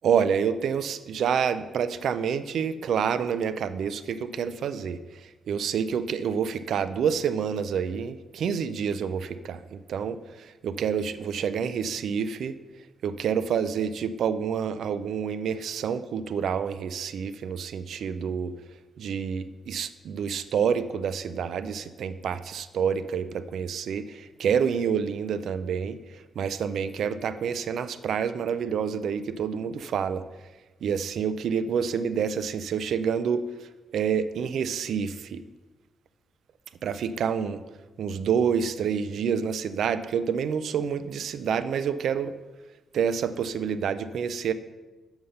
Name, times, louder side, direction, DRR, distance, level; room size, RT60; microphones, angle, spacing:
voice 1, 0.0-5.0 5.5-12.6 13.0-18.5 19.0-30.2 30.8-33.5 33.9-35.4 36.8-37.6 38.0-42.3 42.9-44.5, right 7 dB, 60° right, 13 dB, 0.4 m, -28 dB
6.9 x 5.6 x 6.5 m, 1.2 s
wide cardioid pair, 180°, 0 cm